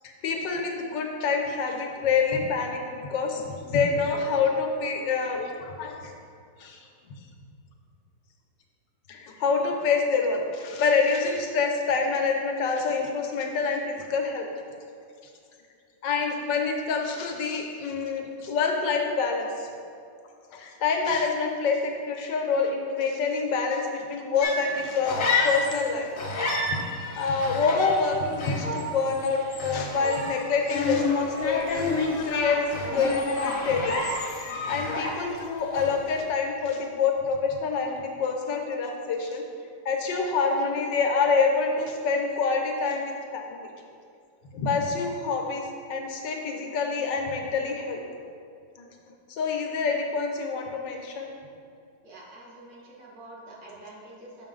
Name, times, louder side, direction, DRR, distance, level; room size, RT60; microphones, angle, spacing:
voice 1, 0.0-6.1 6.6-6.8 9.1-14.5 16.0-19.7 20.5-26.1 26.7-26.9 27.1-31.8 32.2-34.2 34.7-39.4 39.8-43.7 44.5-48.0 48.8-48.9 49.3-51.3, left 4 dB, 75° left, 2 dB, 1.5 m, -27 dB
sound 1, 24.4-25.9 26.2-35.4 35.7-36.1, left 3 dB, 55° left, 1.1 m, -29 dB
voice 2, 52.0-54.5, right 1 dB, 65° right, -5 dB, 1.9 m, -46 dB
6.5 x 6.1 x 3.8 m, 2.4 s
omnidirectional pair, 2.0 m